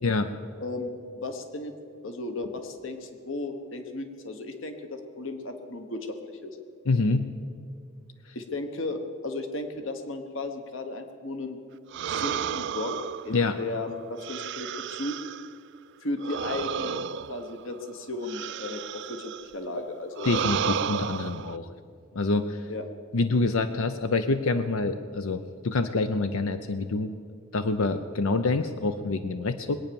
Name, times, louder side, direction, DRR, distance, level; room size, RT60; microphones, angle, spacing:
voice 1, 0.6-0.9 1.2-1.7 2.0-6.5 8.3-11.6 12.1-12.9 13.2-15.1 16.0-17.0 17.3-18.8 19.1-20.4 22.7-22.8, left 2 dB, 65° left, 6 dB, 1.2 m, -35 dB
voice 2, 6.9-7.2 8.3-8.4 13.3-13.6 20.3-21.7 22.1-22.7 23.1-27.1 27.5-29.8, left 3 dB, 80° left, 9 dB, 0.6 m, -26 dB
sound 1, 11.9-15.6 16.2-19.5 20.1-21.6, right 8 dB, 60° right, 0.4 m, -33 dB
21.5 x 9.0 x 7.0 m, 2.3 s
head